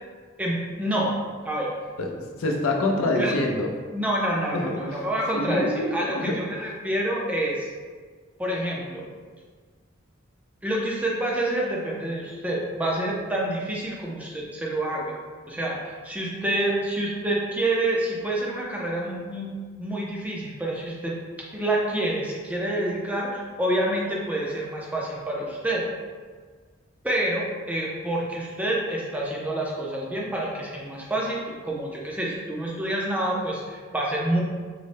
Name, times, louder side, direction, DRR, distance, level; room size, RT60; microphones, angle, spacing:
voice 1, 0.4-1.1 1.4-1.7 3.2-3.3 3.9-7.7 8.4-9.0 10.6-15.2 15.5-19.5 19.8-21.1 21.5-25.8 27.0-34.4, right 1 dB, 5° right, -3 dB, 0.4 m, -27 dB
voice 2, 2.0-3.7 4.5-5.0 5.3-6.7, left 1 dB, 85° left, 0 dB, 0.5 m, -26 dB
3.9 x 2.1 x 3.2 m, 1.6 s
head